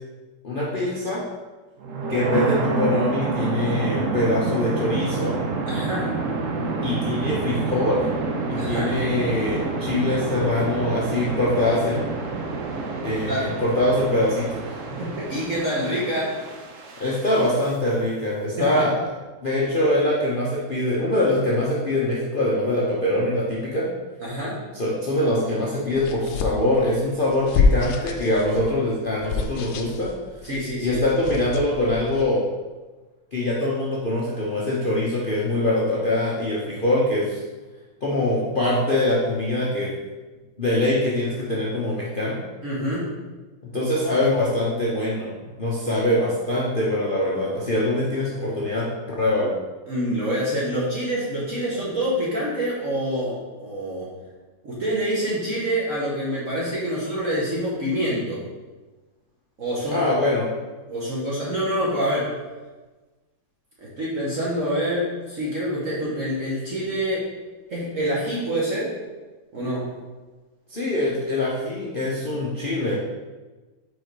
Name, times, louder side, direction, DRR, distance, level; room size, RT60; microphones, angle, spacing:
voice 1, 0.4-1.2 2.1-5.4 6.8-8.0 8.5-12.1 13.0-14.6 17.0-18.9 19.4-23.9 24.7-30.1 30.8-32.4 33.3-37.4 38.0-39.9 40.6-42.4 43.7-45.3 45.6-48.9 49.2-49.5 59.9-60.5 70.7-73.0, left 1 dB, 50° left, -6 dB, 0.6 m, -23 dB
sound 1, 1.8-17.7, right 3 dB, 65° right, 0.8 m, -28 dB
voice 2, 5.7-6.2 8.6-8.9 13.3-13.4 14.9-16.4 18.6-18.8 24.2-24.6 30.4-31.0 42.6-43.1 49.9-54.1 54.6-58.4 59.6-60.0 60.9-62.4 63.8-67.3 67.7-68.9 69.5-69.9, equal, 45° right, -6 dB, 1.3 m, -26 dB
sound 2, 25.9-32.2, left 4 dB, 75° left, 1.3 m, -27 dB
4.8 x 4.8 x 4.6 m, 1.2 s
omnidirectional pair, 2.1 m